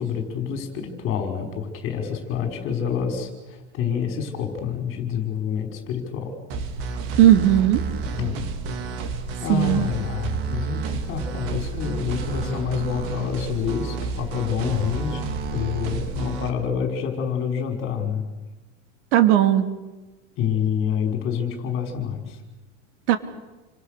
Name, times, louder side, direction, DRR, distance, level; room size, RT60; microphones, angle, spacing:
voice 1, 0.0-6.3 8.2-8.4 9.4-18.2 20.4-22.4, left 7 dB, 35° left, 4 dB, 5.3 m, -27 dB
sound 1, 6.5-16.5, right 4 dB, 55° right, 3.3 m, -30 dB
voice 2, 7.2-7.8 9.5-9.9 19.1-19.7 23.1-23.2, right 12 dB, 75° right, 8 dB, 2.9 m, -16 dB
29.0 x 26.0 x 6.8 m, 1.2 s
supercardioid pair, 170°, 35 cm